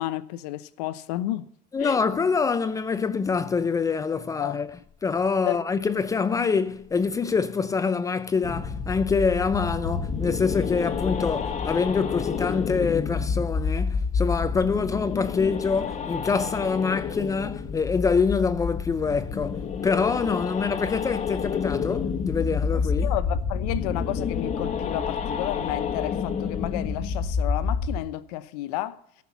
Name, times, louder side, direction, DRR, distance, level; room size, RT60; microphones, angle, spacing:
voice 1, 0.0-1.5 1.8-2.0 4.4-4.6 5.5-5.6 22.7-29.0, left 15 dB, 75° left, 0.9 m, -32 dB
voice 2, 1.7-4.8 5.0-23.1, left 5 dB, 15° left, 0.5 m, -25 dB
sound 1, 8.4-28.0, left 5 dB, 35° left, 1.2 m, -29 dB
14.0 x 5.9 x 7.1 m
supercardioid pair, 125°, 21 cm